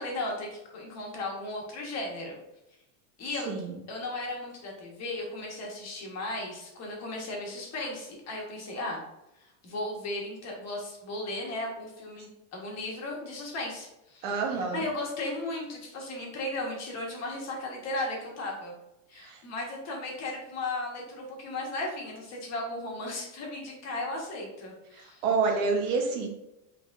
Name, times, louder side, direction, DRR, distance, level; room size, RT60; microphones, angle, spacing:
voice 1, 0.0-2.4 3.2-3.5 3.9-9.0 9.4-18.8 19.1-25.2, left 2 dB, 35° left, -1 dB, 1.4 m, -36 dB
voice 2, 3.5-3.8 14.2-14.9 19.2-19.4 24.9-26.3, right 4 dB, 75° right, 2 dB, 1.3 m, -28 dB
6.0 x 3.4 x 2.6 m, 0.90 s
supercardioid pair, 135°, 43 cm